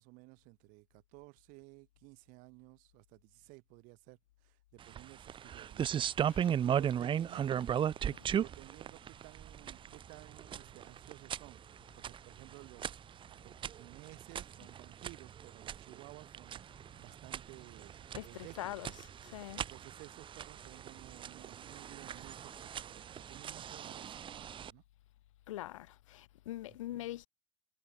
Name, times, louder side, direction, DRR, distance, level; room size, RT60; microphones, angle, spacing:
voice 1, 0.0-4.2 4.4-5.9 6.6-7.8 8.3-11.6 11.9-18.9 19.5-24.8 26.9-27.1, right 26 dB, 55° right, 3.7 m, -55 dB
sound 1, 4.8-24.7, right 9 dB, 30° right, 2.4 m, -38 dB
voice 2, 18.1-19.7 25.5-27.3, left 15 dB, 80° left, 0.9 m, -44 dB
hypercardioid pair, 105°, 16 cm